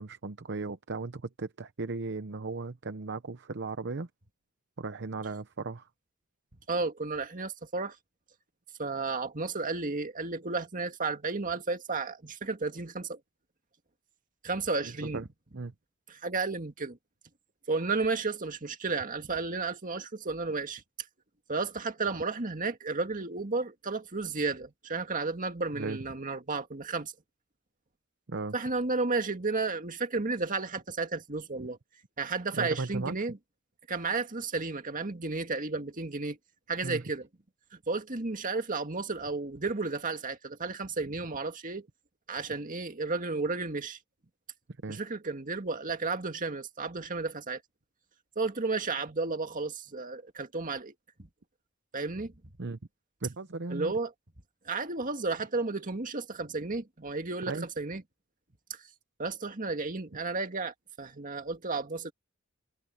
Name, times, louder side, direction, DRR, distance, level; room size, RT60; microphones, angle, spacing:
voice 1, 0.0-4.1 4.8-5.8 14.8-15.2 15.5-15.7 25.7-26.0 28.3-28.5 31.6-31.7 32.5-33.2 36.8-37.0 44.8-45.0 52.6-52.8 53.2-53.9 57.5-57.7, right 3 dB, 55° right, 0.8 m, -36 dB
voice 2, 6.7-8.0 8.8-13.2 14.4-15.3 16.1-17.0 17.7-20.8 21.5-27.1 28.5-31.8 32.2-33.4 33.9-36.4 36.7-37.3 37.9-41.9 42.3-44.0 44.9-47.6 48.4-50.9 51.2-51.3 51.9-52.3 53.7-54.1 54.7-58.0 58.7-58.8 59.2-62.1, right 3 dB, 40° right, 2.0 m, -33 dB
head